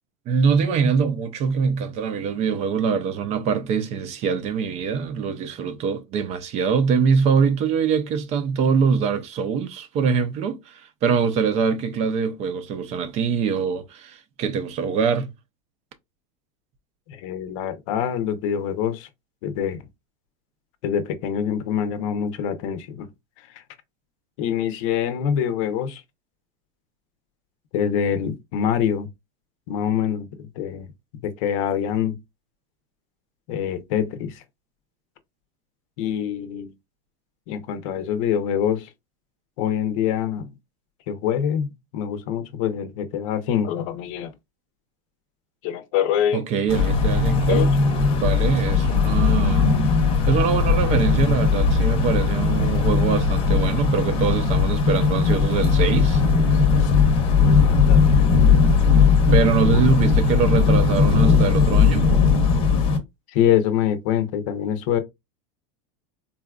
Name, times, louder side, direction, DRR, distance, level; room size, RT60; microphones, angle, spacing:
voice 1, 0.3-15.3 46.3-47.7 48.2-49.7 50.3-56.2 59.3-62.1, right 6 dB, 35° right, 0.5 m, -23 dB
voice 2, 17.1-19.1 19.4-19.8 20.8-23.1 23.4-23.6 24.4-26.0 27.7-29.1 29.7-30.9 31.2-32.2 33.5-34.4 36.0-36.7 37.5-38.9 39.6-40.5 41.1-41.7 41.9-44.3 45.6-46.4 47.5-47.7 56.8-56.9 57.4-58.6 59.7-59.8 63.3-65.0, left 9 dB, 60° left, 0.7 m, -25 dB
sound 1, 46.7-63.0, left 5 dB, 30° left, 0.8 m, -18 dB
3.9 x 2.4 x 2.2 m
supercardioid pair, 140°, 19 cm